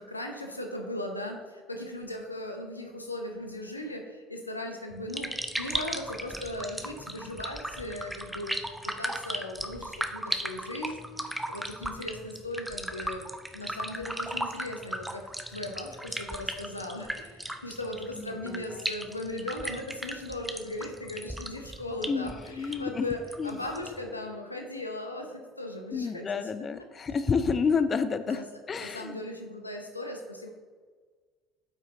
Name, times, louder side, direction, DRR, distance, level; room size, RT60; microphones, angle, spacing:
voice 1, 0.0-8.6 9.0-13.2 13.5-15.2 15.5-26.5 28.2-30.5, left 1 dB, 85° left, 3 dB, 0.8 m, -38 dB
sound 1, 4.9-24.1, right 1 dB, 5° right, 0.8 m, -37 dB
voice 2, 22.1-23.0 23.4-23.6 25.9-28.4 28.7-29.1, left 5 dB, 30° left, 11 dB, 0.4 m, -29 dB
8.6 x 5.6 x 3.8 m, 1.5 s
figure-of-eight pair, 60°, 0 cm